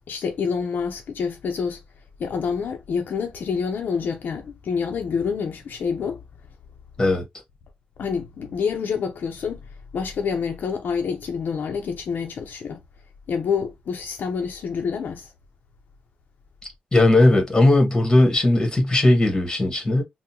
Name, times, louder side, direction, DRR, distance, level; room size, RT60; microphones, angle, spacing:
voice 1, 0.1-1.8 2.2-6.2 8.0-9.6 9.9-12.8 13.3-15.3, left 6 dB, 70° left, 0.6 m, -27 dB
voice 2, 16.9-20.0, left 2 dB, 20° left, 1.4 m, -17 dB
3.7 x 2.1 x 2.8 m
wide cardioid pair, 130°, 3 cm